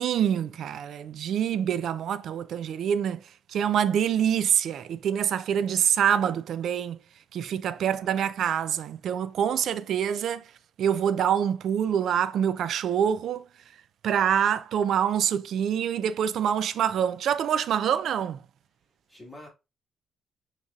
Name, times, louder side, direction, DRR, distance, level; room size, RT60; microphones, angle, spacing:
voice 1, 0.0-3.2 3.5-7.0 7.3-10.4 10.8-13.4 14.0-18.4, right 9 dB, 70° right, 0.3 m, -26 dB
voice 2, 7.7-8.3 19.1-19.5, left 1 dB, 10° left, 1.6 m, -48 dB
5.8 x 2.9 x 2.3 m
cardioid pair, 90°, 0 cm